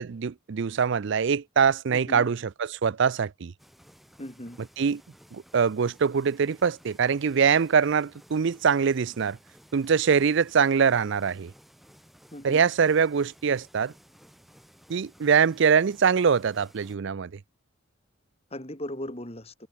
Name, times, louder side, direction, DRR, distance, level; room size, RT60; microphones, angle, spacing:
voice 1, 0.0-3.5 4.8-5.0 5.3-9.4 9.7-11.5 12.4-13.9 14.9-17.3, right 6 dB, 60° right, 0.4 m, -23 dB
voice 2, 1.9-2.3 4.2-4.6 12.3-12.6 18.5-19.5, left 1 dB, 30° left, 3.6 m, -37 dB
sound 1, 3.6-17.0, equal, ahead, 7.6 m, -56 dB
head